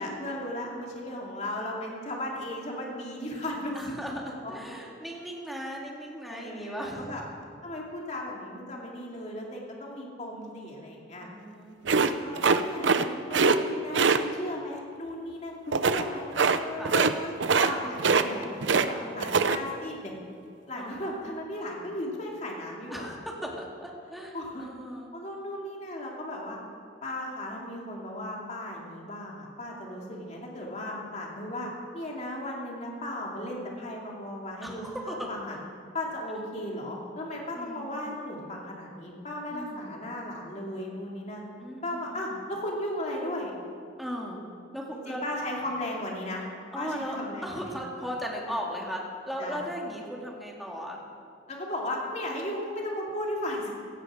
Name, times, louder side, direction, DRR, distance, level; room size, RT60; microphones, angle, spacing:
voice 1, 0.0-3.9 4.4-4.5 6.3-7.2 7.6-11.3 12.1-20.1 20.7-23.1 24.3-24.7 25.1-26.6 27.0-35.6 35.9-41.4 41.8-43.5 44.9-46.5 46.7-47.8 49.4-49.6 51.5-53.7, left 1 dB, 40° left, -2 dB, 2.5 m, -36 dB
voice 2, 3.7-7.2 11.2-11.8 16.8-17.0 17.7-18.1 19.0-19.4 20.8-21.2 22.9-25.1 34.6-35.3 37.5-38.0 39.5-39.9 41.6-42.4 44.0-44.4 44.7-45.4 46.7-47.2 47.4-51.0, equal, ahead, -2 dB, 2.2 m, -37 dB
sound 1, 11.9-13.1 13.3-13.6 13.9-14.2 15.7-16.0 16.4-16.6 16.8-17.1 17.4-17.7 18.0-18.9 19.2-19.6, right 5 dB, 80° right, 0.7 m, -22 dB
17.0 x 15.0 x 4.9 m, 2.3 s
head